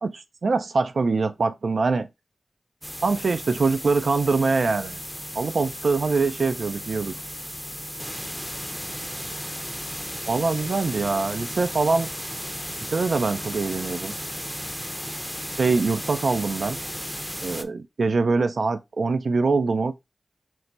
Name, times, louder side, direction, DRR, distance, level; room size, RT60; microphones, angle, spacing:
voice 1, 0.0-2.1 3.0-5.0 5.4-7.1 10.3-12.1 12.9-14.1 15.6-16.8 17.4-19.9, right 4 dB, 75° right, 0.3 m, -23 dB
sound 1, 2.8-17.6, equal, ahead, 0.5 m, -35 dB
4.5 x 2.2 x 3.8 m
wide cardioid pair, 60°, 0 cm